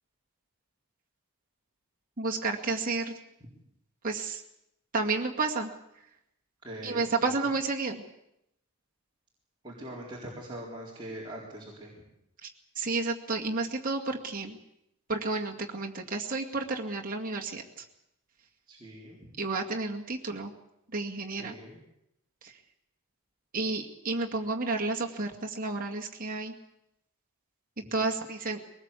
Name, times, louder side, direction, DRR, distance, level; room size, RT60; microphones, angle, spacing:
voice 1, 2.2-3.1 4.0-4.4 4.9-5.7 6.8-8.0 12.4-12.5 12.8-14.6 15.1-17.8 19.4-20.5 20.9-21.6 22.4-22.6 23.5-26.5 27.9-28.6, right 3 dB, 40° right, 0 dB, 2.2 m, -31 dB
voice 2, 6.6-7.5 9.6-11.9 18.7-19.2 21.4-21.8, right 1 dB, 20° right, -5 dB, 4.2 m, -42 dB
22.0 x 19.5 x 8.4 m, 0.82 s
head